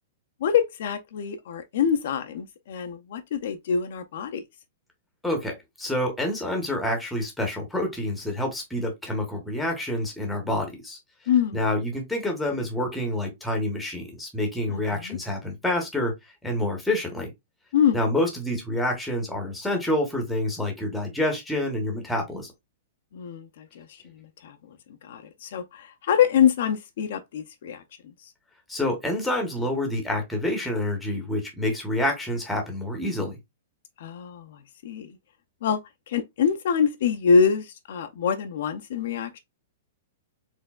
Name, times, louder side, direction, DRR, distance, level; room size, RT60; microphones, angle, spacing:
voice 1, 0.4-4.4 11.3-11.6 14.7-15.2 17.7-18.0 23.1-24.6 25.0-27.8 28.2-28.3 34.0-35.1 35.6-35.8 36.1-39.4, left 7 dB, 55° left, 0.5 m, -25 dB
voice 2, 5.2-11.0 11.5-16.1 16.4-17.3 17.9-22.5 28.7-33.4, left 1 dB, ahead, 1.0 m, -27 dB
4.3 x 3.3 x 2.3 m
hypercardioid pair, 170°, 0 cm